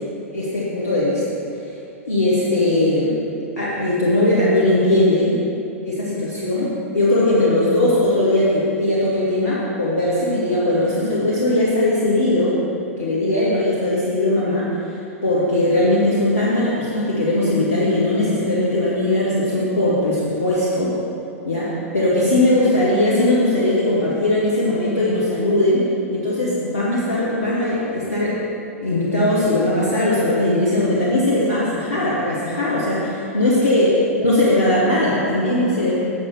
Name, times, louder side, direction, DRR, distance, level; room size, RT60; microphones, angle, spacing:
voice 1, 0.3-1.2 2.0-3.1 3.6-5.3 5.8-12.5 13.0-20.9 21.4-21.7 21.9-25.8 26.1-28.3 28.8-33.9 34.2-35.9, left 1 dB, 80° left, -7 dB, 1.6 m, -19 dB
8.3 x 5.8 x 6.7 m, 2.7 s
figure-of-eight pair, 100°, 8 cm